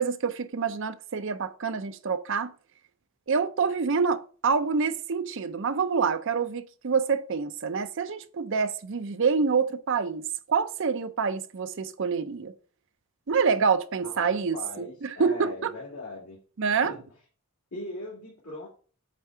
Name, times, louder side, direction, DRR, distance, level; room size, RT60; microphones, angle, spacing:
voice 1, 0.0-2.5 3.3-12.5 13.3-15.7 16.6-16.9, right 5 dB, 55° right, 0.5 m, -27 dB
voice 2, 14.0-16.4 16.8-17.0 17.7-18.7, left 2 dB, 85° left, 2.3 m, -40 dB
8.3 x 3.7 x 4.4 m
head